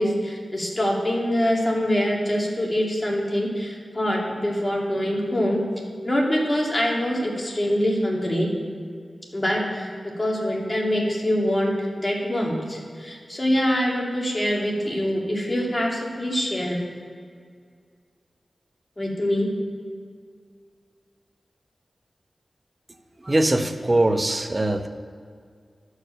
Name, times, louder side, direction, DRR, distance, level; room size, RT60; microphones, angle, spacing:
voice 1, 0.0-5.6 6.0-8.5 9.3-9.9 10.2-11.7 12.0-16.8 19.0-19.5, equal, 30° left, -2 dB, 2.5 m, -24 dB
voice 2, 23.2-24.9, right 1 dB, 35° right, 7 dB, 0.9 m, -21 dB
12.0 x 4.9 x 6.7 m, 2.1 s
cardioid pair, 45°, 0 cm